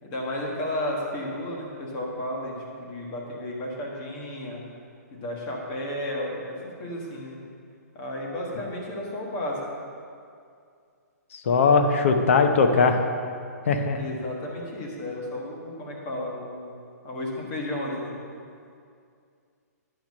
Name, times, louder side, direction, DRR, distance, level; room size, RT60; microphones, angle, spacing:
voice 1, 0.0-4.6 5.1-7.4 7.9-9.6 13.9-16.7 17.0-18.1, left 1 dB, 25° left, -2 dB, 1.5 m, -33 dB
voice 2, 11.3-13.0 13.7-14.0, left 4 dB, 50° left, 6 dB, 0.7 m, -20 dB
10.0 x 6.1 x 5.3 m, 2.3 s
hypercardioid pair, 170°, 9 cm